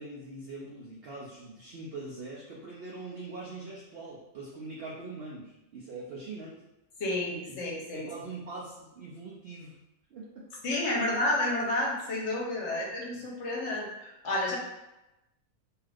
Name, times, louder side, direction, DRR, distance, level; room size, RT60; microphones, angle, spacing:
voice 1, 0.0-6.6 7.9-9.7 10.1-10.5 12.6-12.8 13.1-13.2, right 3 dB, 85° right, -5 dB, 0.5 m, -42 dB
voice 2, 7.0-8.1 10.6-14.6, left 1 dB, 55° left, -3 dB, 1.0 m, -30 dB
2.7 x 2.4 x 3.3 m, 0.94 s
omnidirectional pair, 1.6 m